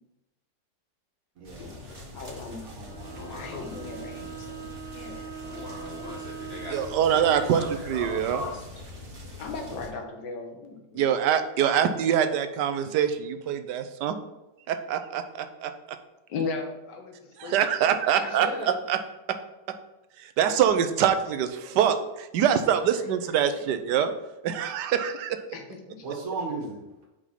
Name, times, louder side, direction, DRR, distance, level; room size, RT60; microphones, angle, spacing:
sound 1, 1.4-9.9, left 1 dB, 35° right, 1.3 m, -43 dB
voice 1, 1.4-1.7 2.6-4.3 26.0-26.8, right 3 dB, 55° right, -1 dB, 1.8 m, -37 dB
voice 2, 2.1-2.7 3.3-5.3 9.4-11.0 16.3-17.6 18.1-18.8 22.8-23.7 25.5-26.1, left 4 dB, 75° left, 3 dB, 1.7 m, -37 dB
Bowed string instrument, 2.8-7.8, right 7 dB, 15° left, 0.9 m, -42 dB
voice 3, 3.1-3.6 5.4-8.6, left 2 dB, 45° left, -3 dB, 0.9 m, -39 dB
voice 4, 6.7-8.4 10.9-14.2 14.7-15.7 17.4-19.0 20.2-24.1 24.4-25.4, right 9 dB, 75° right, 9 dB, 1.2 m, -24 dB
4.9 x 4.9 x 5.7 m, 0.96 s
omnidirectional pair, 1.9 m